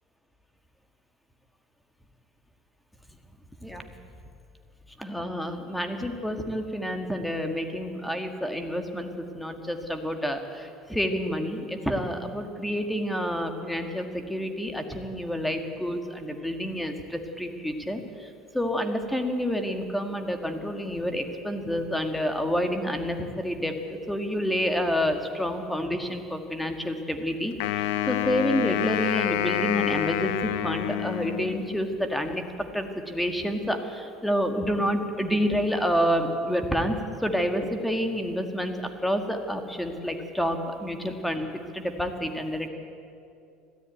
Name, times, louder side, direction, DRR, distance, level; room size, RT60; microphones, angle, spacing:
voice 1, 5.0-23.7 24.1-38.8 39.0-41.5 41.7-42.7, equal, 5° left, 6 dB, 1.8 m, -29 dB
Wind instrument woodwind instrument, 27.6-31.9, left 12 dB, 85° left, 1.1 m, -28 dB
20.5 x 14.0 x 9.2 m, 2.5 s
cardioid pair, 130°, 0 cm